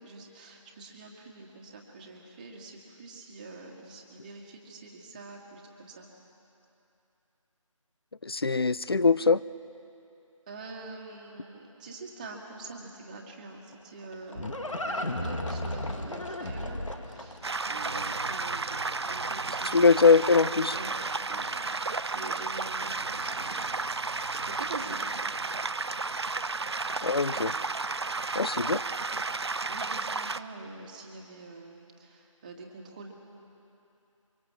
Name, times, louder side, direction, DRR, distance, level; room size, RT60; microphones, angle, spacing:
voice 1, 0.0-6.1 10.5-20.1 20.7-21.0 21.3-21.7 22.1-25.3 29.4-33.1, right 3 dB, 15° right, 0 dB, 1.7 m, -45 dB
voice 2, 8.2-9.4 19.7-20.8 27.0-27.6 28.3-28.8, left 4 dB, 45° left, 16 dB, 0.5 m, -22 dB
Livestock farm animals working animals, 13.7-18.8, left 1 dB, 70° left, 2.0 m, -35 dB
sound 1, 17.4-30.4, right 3 dB, 50° right, 0.6 m, -32 dB
24.0 x 24.0 x 7.5 m, 2.8 s
figure-of-eight pair, 160°, 17 cm